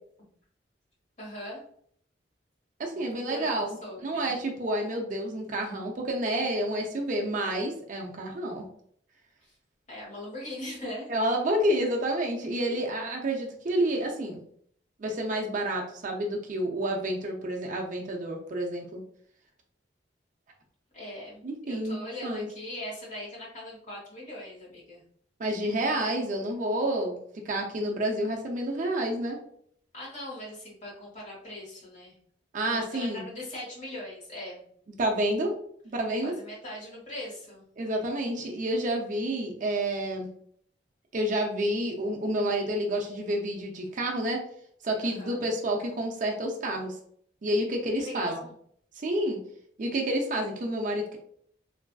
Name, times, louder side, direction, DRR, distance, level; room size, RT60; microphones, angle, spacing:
voice 1, 1.2-1.6 2.9-4.4 9.4-9.5 9.9-11.1 20.9-25.0 29.9-32.1 32.6-34.6 36.2-37.6 45.0-45.4 48.0-48.5, left 1 dB, 45° left, -5 dB, 1.4 m, -40 dB
voice 2, 2.8-3.8 4.0-8.7 11.1-14.4 15.0-19.0 21.4-22.5 25.4-27.2 27.5-29.4 32.5-33.2 35.0-35.5 35.8-36.3 37.8-40.3 41.1-44.4 44.8-46.9 47.4-48.3 49.0-49.4 49.8-51.2, right 1 dB, 45° right, 1 dB, 0.5 m, -29 dB
3.2 x 2.5 x 2.2 m, 0.64 s
head